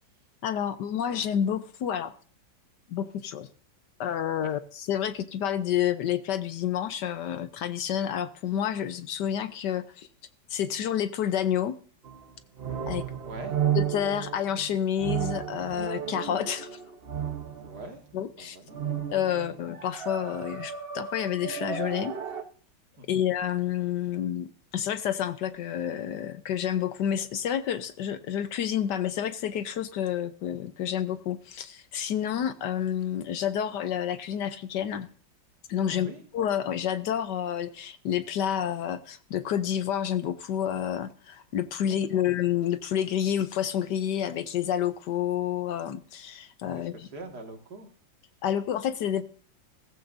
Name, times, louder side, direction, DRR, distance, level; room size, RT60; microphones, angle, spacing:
voice 1, 0.4-2.1 2.9-3.5 4.0-10.1 10.5-11.8 12.9-13.1 13.7-16.8 18.1-18.6 19.1-22.1 23.1-24.5 24.7-35.1 35.7-36.1 36.3-47.1 48.4-49.2, left 9 dB, 70° left, 1.3 m, -29 dB
sound 1, 12.0-18.0 18.7-22.4, right 9 dB, 40° right, 1.0 m, -33 dB
voice 2, 13.2-13.5 17.6-18.0 18.4-19.0 19.3-19.6 23.0-23.2 35.9-36.2 41.9-42.2 46.7-47.9, right 2 dB, 55° right, 2.5 m, -43 dB
17.0 x 15.0 x 2.7 m
omnidirectional pair, 2.1 m